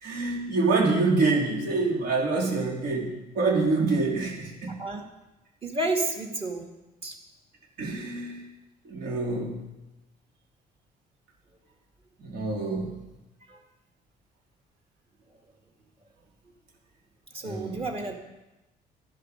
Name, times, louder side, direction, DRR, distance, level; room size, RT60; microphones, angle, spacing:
voice 1, 0.0-4.8 7.8-8.4 8.8-9.6 12.2-13.0 17.4-17.8, right 3 dB, 70° right, -1 dB, 3.9 m, -26 dB
voice 2, 4.7-5.0 5.6-6.7 7.0-7.2 13.5-13.6 17.3-18.1, right 2 dB, 35° right, 2 dB, 2.1 m, -31 dB
13.5 x 11.0 x 5.3 m, 1.0 s
cardioid pair, 110°, 17 cm